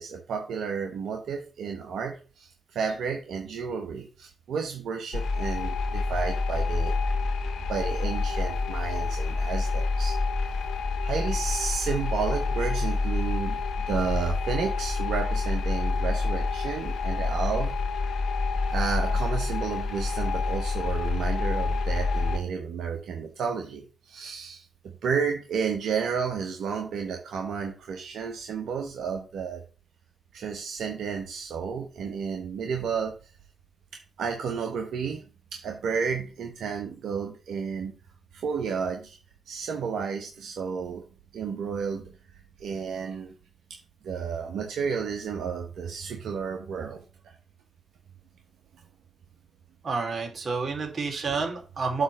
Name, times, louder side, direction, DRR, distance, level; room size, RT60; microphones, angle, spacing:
voice 1, 0.0-6.9 7.7-10.2 10.4-10.7 11.0-17.7 18.7-29.6 30.3-33.3 34.2-35.2 35.5-38.0 38.3-39.2 39.5-41.0 41.3-42.1 42.6-43.3 44.0-47.3, right 6 dB, 75° right, 3 dB, 1.2 m, -32 dB
sound 1, 5.1-22.4, left 3 dB, 75° left, 1.5 m, -27 dB
voice 2, 49.8-52.0, right 4 dB, 45° right, 2 dB, 2.8 m, -29 dB
7.9 x 3.4 x 6.5 m, 0.34 s
supercardioid pair, 55°, 0 cm